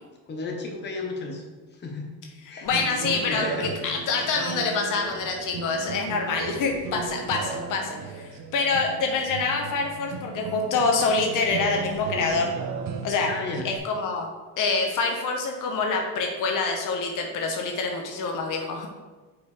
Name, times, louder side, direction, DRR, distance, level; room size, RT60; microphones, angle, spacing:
voice 1, 0.3-1.4 1.8-2.1 2.5-2.7 3.3-3.9 4.2-4.4 13.3-13.7, left 3 dB, 30° left, 0 dB, 1.2 m, -33 dB
voice 2, 2.6-3.4 3.8-12.5 13.0-13.3 13.6-14.3 14.6-18.9, left 4 dB, 60° left, 2 dB, 1.1 m, -26 dB
sound 1, 2.7-13.8, right 5 dB, 60° right, 0.9 m, -36 dB
7.9 x 4.9 x 3.5 m, 1.3 s
cardioid pair, 135°, 36 cm